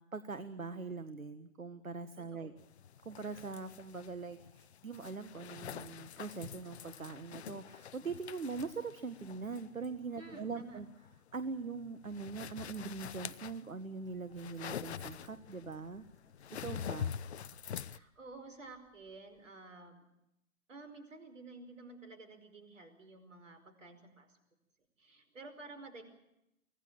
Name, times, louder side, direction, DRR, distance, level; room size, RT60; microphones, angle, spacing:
voice 1, 0.0-2.5 3.0-10.9 11.3-16.0 16.5-17.2, right 4 dB, 80° right, 12 dB, 1.5 m, -42 dB
voice 2, 2.2-2.6 10.2-10.8 16.7-16.9 17.8-20.1 20.7-24.4 25.0-26.0, right 3 dB, 65° right, 9 dB, 5.2 m, -52 dB
sound 1, 2.6-18.0, left 8 dB, 50° left, 0.8 m, -46 dB
sound 2, 14.1-19.5, right 2 dB, 5° right, 5.1 m, -74 dB
25.0 x 17.0 x 9.0 m, 0.86 s
figure-of-eight pair, 120°, 41 cm